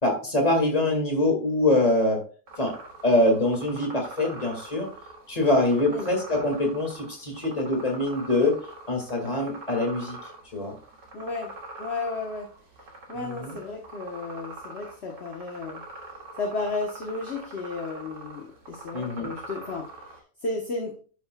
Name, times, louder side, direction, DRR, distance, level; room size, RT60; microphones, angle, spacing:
voice 1, 0.0-2.2 2.6-2.7 3.0-4.9 5.3-8.6 8.9-10.7 13.1-13.6 18.9-19.3, left 2 dB, 25° left, 1 dB, 2.1 m, -24 dB
sound 1, 2.5-20.2, right 2 dB, 90° right, 2.2 m, -43 dB
voice 2, 11.1-12.5 13.1-15.8 16.4-21.0, left 3 dB, 45° left, 1 dB, 1.3 m, -33 dB
11.0 x 6.1 x 2.3 m, 0.39 s
omnidirectional pair, 1.7 m